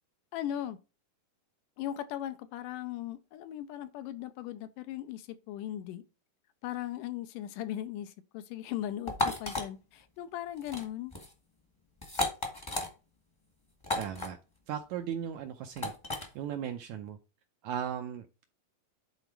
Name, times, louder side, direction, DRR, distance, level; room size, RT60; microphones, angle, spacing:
voice 1, 0.3-0.8 1.8-6.0 6.6-11.1, left 12 dB, 80° left, 2.1 m, -38 dB
sound 1, 9.1-9.6 10.6-10.8 11.1-11.3 12.0-12.9 13.8-14.3 15.8-16.3, left 2 dB, 15° left, 0.8 m, -33 dB
voice 2, 13.9-14.4 14.7-17.2 17.6-18.3, right 9 dB, 80° right, 1.7 m, -37 dB
9.9 x 4.0 x 4.6 m
omnidirectional pair, 3.9 m